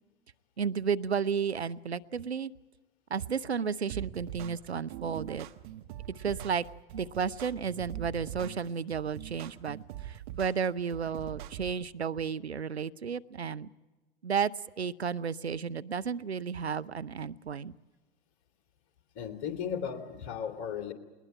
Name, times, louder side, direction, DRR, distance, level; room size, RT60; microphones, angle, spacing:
voice 1, 0.6-2.5 3.1-5.5 6.1-6.6 6.9-13.7 14.2-17.7, right 6 dB, 85° right, 15 dB, 0.7 m, -33 dB
sound 1, 3.9-11.9, right 13 dB, 50° right, 1.2 m, -43 dB
voice 2, 19.1-20.9, left 8 dB, 40° left, 6 dB, 2.8 m, -35 dB
20.5 x 20.5 x 8.9 m, 1.2 s
figure-of-eight pair, 100°, 31 cm